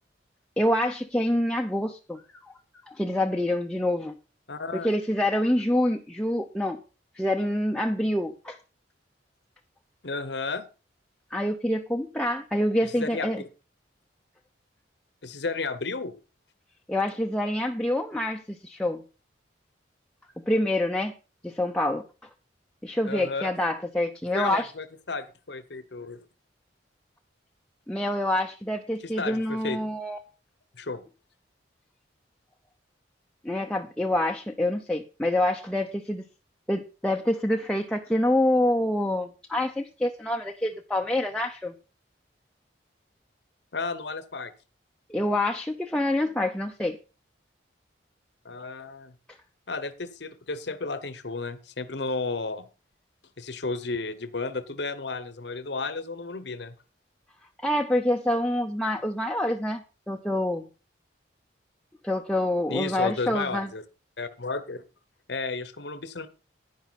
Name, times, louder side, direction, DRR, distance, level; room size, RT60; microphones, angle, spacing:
voice 1, 0.6-2.2 2.9-4.1 4.7-6.8 7.2-8.6 11.3-13.4 16.9-19.0 20.5-21.1 21.4-22.0 22.8-24.7 27.9-30.2 33.4-36.2 36.7-41.7 45.1-47.0 57.6-60.7 62.0-63.7, left 1 dB, 5° left, 2 dB, 0.7 m, -26 dB
voice 2, 4.5-4.9 10.0-10.6 12.8-13.4 15.2-16.1 23.1-23.5 24.3-26.2 29.0-29.8 30.8-31.0 43.7-44.5 48.4-49.1 49.7-52.6 53.4-56.7 62.7-63.8 64.2-64.8 65.3-66.3, left 3 dB, 65° left, 13 dB, 1.0 m, -33 dB
10.5 x 10.5 x 4.2 m, 0.33 s
head